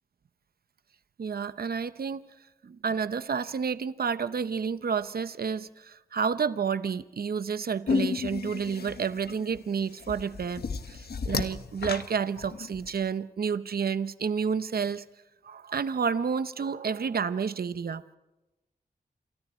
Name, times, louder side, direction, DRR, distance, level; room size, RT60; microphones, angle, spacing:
voice 1, 1.2-2.3 2.6-15.0 15.4-18.2, right 6 dB, 75° right, 13 dB, 0.8 m, -30 dB
sound 1, 7.9-12.9, left 5 dB, 85° left, 1.3 m, -32 dB
29.0 x 28.0 x 4.4 m, 1.0 s
wide cardioid pair, 90°, 16 cm